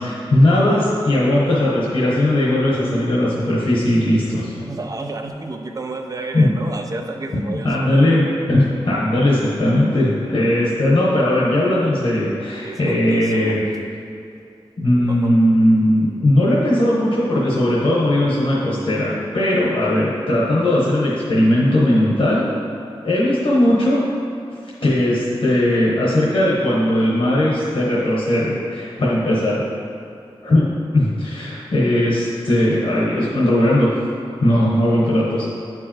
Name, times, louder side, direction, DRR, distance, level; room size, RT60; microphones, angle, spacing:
voice 1, 0.0-4.5 6.3-6.5 7.3-13.6 14.8-22.5 23.0-24.0 24.8-29.6 30.4-33.9 34.4-35.5, left 1 dB, 65° left, -7 dB, 1.1 m, -18 dB
voice 2, 4.6-8.2 12.6-13.6 15.1-15.4, right 2 dB, 35° right, 3 dB, 0.5 m, -31 dB
8.1 x 4.6 x 2.9 m, 2.6 s
wide cardioid pair, 80°, 10 cm